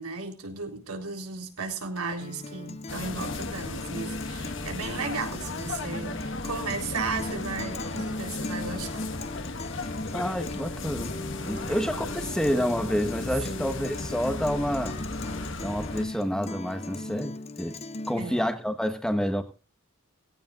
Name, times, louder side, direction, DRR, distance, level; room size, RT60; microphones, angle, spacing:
voice 1, 0.0-9.1 11.7-11.9 13.5-13.7 18.2-18.5, right 4 dB, 90° right, 4.0 m, -35 dB
Guitar, 2.2-18.2, left 2 dB, 30° left, 0.7 m, -38 dB
sound 1, 2.9-16.1, left 2 dB, 55° left, 1.6 m, -36 dB
voice 2, 10.1-11.1 11.4-15.0 15.6-17.8 18.1-19.4, equal, 5° left, 1.4 m, -28 dB
18.5 x 17.0 x 2.5 m
head